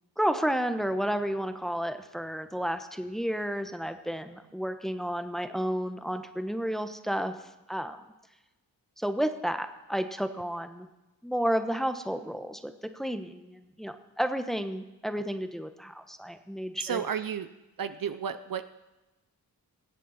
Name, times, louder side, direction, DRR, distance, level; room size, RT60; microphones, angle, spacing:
voice 1, 0.2-7.3 7.7-8.0 9.0-10.9 11.2-17.0, equal, ahead, 8 dB, 1.2 m, -31 dB
voice 2, 16.8-17.5 17.8-18.6, right 7 dB, 60° right, 11 dB, 0.7 m, -32 dB
19.5 x 8.3 x 4.2 m, 1.0 s
cardioid pair, 40°, 39 cm